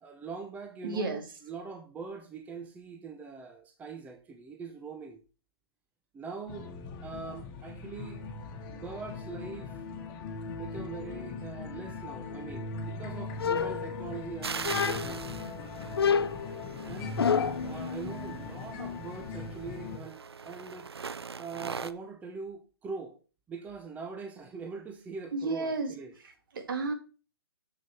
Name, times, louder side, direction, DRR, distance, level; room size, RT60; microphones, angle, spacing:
voice 1, 0.0-5.2 6.1-6.7 7.0-8.2 8.7-9.8 10.5-15.3 16.8-17.2 17.6-20.9 21.4-23.2 23.5-26.1, right 5 dB, 10° right, 0.9 m, -42 dB
voice 2, 0.8-1.2 25.3-26.9, right 3 dB, 60° right, 2.0 m, -33 dB
sound 1, 6.5-20.0, left 3 dB, 30° left, 1.6 m, -40 dB
sound 2, 13.4-14.2 14.6-15.3 16.0-17.7, left 6 dB, 75° left, 0.5 m, -28 dB
sound 3, 14.4-21.9, right 5 dB, 85° right, 0.5 m, -41 dB
7.1 x 6.3 x 4.4 m
figure-of-eight pair, 130°, 13 cm